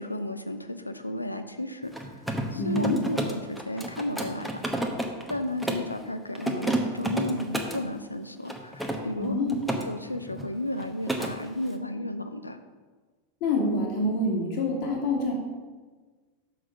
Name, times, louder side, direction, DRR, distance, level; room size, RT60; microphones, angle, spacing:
voice 1, 0.0-2.1 2.5-4.9 5.3-9.3 9.7-12.6, left 1 dB, 85° left, 8 dB, 0.6 m, -33 dB
Mechanisms, 1.8-5.9 6.3-7.8 8.5-9.8 10.1-10.5 10.8-11.3, right 1 dB, ahead, 0.9 m, -31 dB
voice 2, 2.5-3.0 9.2-9.6 13.4-15.3, left 2 dB, 45° left, -1 dB, 2.2 m, -26 dB
6.3 x 5.7 x 6.1 m, 1.4 s
figure-of-eight pair, 90°, 0 cm